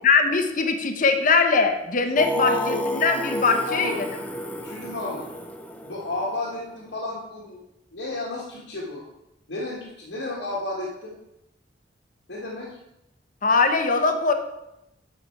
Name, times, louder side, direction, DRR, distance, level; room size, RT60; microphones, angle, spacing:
voice 1, 0.0-4.0 13.4-14.3, left 4 dB, 45° left, 6 dB, 0.9 m, -21 dB
Singing, 2.2-6.9, equal, 5° left, 0.5 m, -31 dB
voice 2, 2.3-2.8 3.4-4.0 4.5-5.3 5.8-7.6 7.9-9.0 9.5-11.1 12.3-12.8, left 2 dB, 75° left, -5 dB, 1.6 m, -32 dB
8.7 x 6.1 x 4.5 m, 0.87 s
head